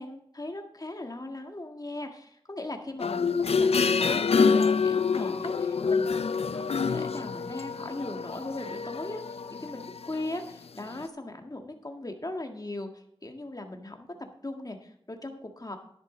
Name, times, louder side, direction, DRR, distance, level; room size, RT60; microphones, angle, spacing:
voice 1, 0.0-15.8, left 2 dB, 40° left, 4 dB, 1.8 m, -39 dB
sound 1, 3.0-10.5 11.0-11.1, left 5 dB, 90° left, 0.4 m, -27 dB
11.5 x 10.5 x 3.9 m, 0.73 s
wide cardioid pair, 55°, 10 cm